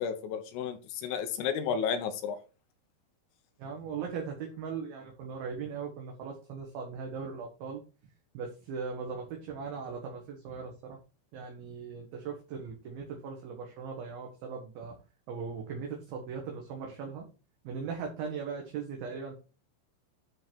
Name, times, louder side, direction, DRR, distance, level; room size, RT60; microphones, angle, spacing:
voice 1, 0.0-2.4, left 7 dB, 80° left, 8 dB, 3.5 m, -32 dB
voice 2, 3.6-7.8 8.3-11.0 11.3-15.0 15.3-17.3 17.6-19.3, right 5 dB, 70° right, 1 dB, 2.4 m, -39 dB
10.5 x 3.9 x 4.4 m, 0.33 s
omnidirectional pair, 5.8 m